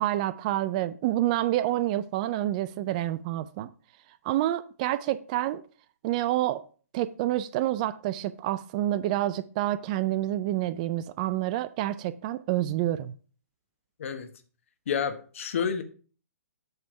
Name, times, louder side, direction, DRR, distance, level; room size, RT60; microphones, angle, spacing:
voice 1, 0.0-3.7 4.2-5.6 6.0-6.6 6.9-13.1, right 14 dB, 30° right, 0.3 m, -28 dB
voice 2, 14.9-15.8, left 7 dB, 55° left, 1.1 m, -29 dB
8.1 x 3.5 x 6.5 m
hypercardioid pair, 145°, 8 cm